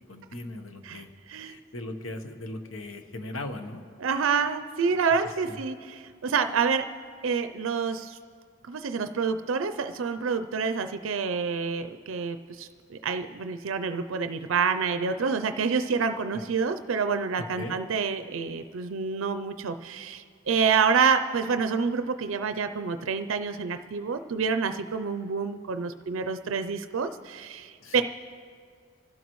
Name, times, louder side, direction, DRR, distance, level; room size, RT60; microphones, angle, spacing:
voice 1, 0.1-1.1 1.4-3.8 5.5-5.6 17.6-17.8 27.8-28.0, left 1 dB, 85° left, 7 dB, 1.1 m, -38 dB
voice 2, 4.0-6.8 7.2-8.2 8.7-28.0, right 5 dB, 80° right, 8 dB, 0.5 m, -28 dB
28.5 x 12.5 x 3.1 m, 2.1 s
head